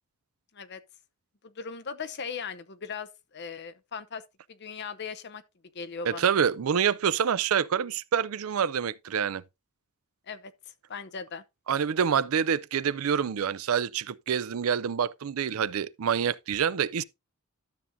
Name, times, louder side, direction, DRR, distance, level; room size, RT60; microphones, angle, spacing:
voice 1, 1.4-4.2 4.5-5.4 5.7-6.3 10.3-10.5 10.9-11.4, left 5 dB, 50° left, 0.7 m, -38 dB
voice 2, 6.1-9.4 11.7-17.0, right 7 dB, 75° right, 0.4 m, -27 dB
12.5 x 7.1 x 2.6 m
head